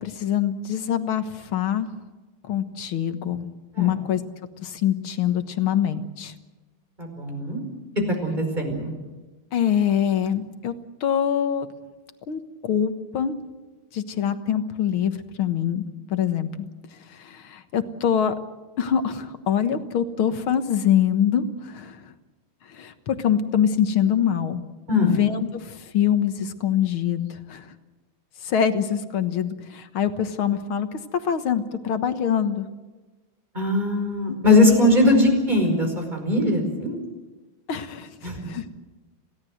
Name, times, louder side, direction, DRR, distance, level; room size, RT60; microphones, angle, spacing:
voice 1, 0.0-1.9 2.5-3.5 3.8-4.2 4.6-6.3 9.5-10.7 11.0-11.7 12.3-13.4 13.9-15.1 15.4-15.8 16.1-16.7 17.2-18.4 18.8-22.0 22.7-24.6 25.0-27.6 28.4-30.9 31.2-32.7 34.3-34.4 34.6-34.9 37.7-38.7, left 9 dB, 80° left, 9 dB, 2.2 m, -24 dB
voice 2, 7.0-7.6 8.2-8.9 24.9-25.2 33.5-37.0 38.2-38.4, left 2 dB, 20° right, 4 dB, 5.2 m, -20 dB
28.0 x 17.0 x 7.9 m, 1.2 s
omnidirectional pair, 2.3 m